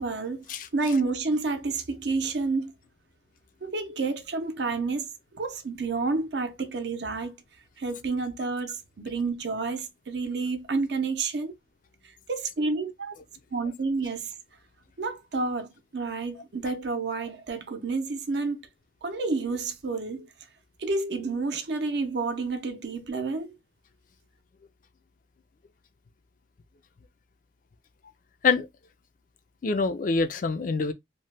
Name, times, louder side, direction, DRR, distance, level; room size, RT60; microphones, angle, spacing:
voice 1, 0.0-2.7 3.6-5.1 5.3-7.3 7.8-11.5 12.3-13.2 13.5-14.3 15.0-18.6 19.0-20.3 20.8-23.5, right 3 dB, 65° right, 0.6 m, -29 dB
voice 2, 29.6-30.9, left 4 dB, 45° left, 0.4 m, -25 dB
2.8 x 2.1 x 3.2 m
head